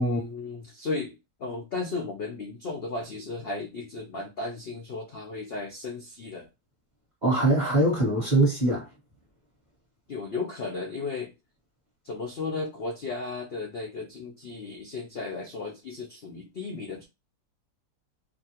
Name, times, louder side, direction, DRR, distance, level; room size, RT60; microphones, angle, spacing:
voice 1, 0.0-6.5 10.1-11.3 12.0-17.1, left 3 dB, 75° left, 0.5 m, -35 dB
voice 2, 7.2-8.9, right 2 dB, 30° right, 0.9 m, -22 dB
2.8 x 2.5 x 2.8 m
omnidirectional pair, 1.8 m